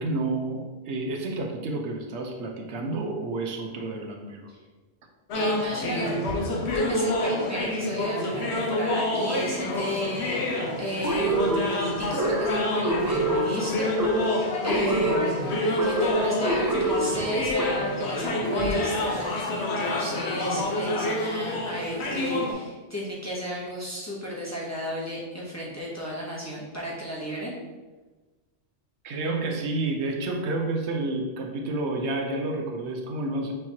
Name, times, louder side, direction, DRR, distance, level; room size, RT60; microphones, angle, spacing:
voice 1, 0.0-4.5 29.0-33.5, right 2 dB, 75° right, 2 dB, 0.9 m, -30 dB
sound 1, 5.3-22.5, left 1 dB, 70° left, 1.0 m, -28 dB
voice 2, 5.3-6.2 6.7-10.5 10.8-27.6, equal, 15° left, -6 dB, 0.8 m, -33 dB
sound 2, 11.0-18.1, right 2 dB, 20° right, 0.6 m, -27 dB
6.4 x 3.0 x 2.8 m, 1.3 s
omnidirectional pair, 1.2 m